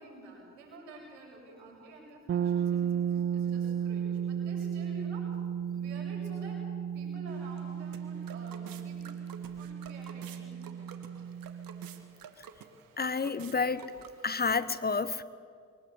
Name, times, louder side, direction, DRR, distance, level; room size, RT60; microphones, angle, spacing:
voice 1, 0.0-5.3 5.7-6.6 6.9-9.1 9.5-11.0, right 1 dB, 80° right, -1 dB, 7.3 m, -50 dB
sound 1, 2.3-12.1, right 8 dB, 35° right, 0.6 m, -34 dB
sound 2, 7.3-14.4, right 7 dB, 60° right, 1.9 m, -51 dB
voice 2, 13.0-13.8 14.2-15.2, left 4 dB, 25° left, 15 dB, 1.0 m, -29 dB
23.0 x 19.5 x 8.1 m, 2.3 s
hypercardioid pair, 60°, 38 cm